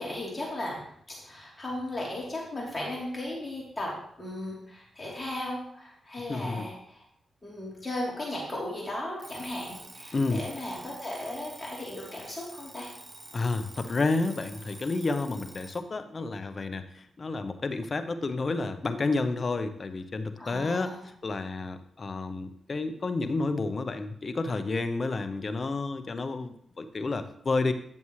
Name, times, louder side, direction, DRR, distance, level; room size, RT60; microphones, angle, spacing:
voice 1, 0.0-7.0 7.4-12.9 20.4-21.0, left 1 dB, 25° left, -4 dB, 3.1 m, -36 dB
voice 2, 6.3-6.7 10.1-10.4 13.3-27.7, left 3 dB, 45° left, 10 dB, 0.8 m, -30 dB
Alarm, 9.2-15.9, right 2 dB, 25° right, 0.9 m, -48 dB
9.7 x 7.1 x 3.1 m, 0.68 s
supercardioid pair, 50°, 0 cm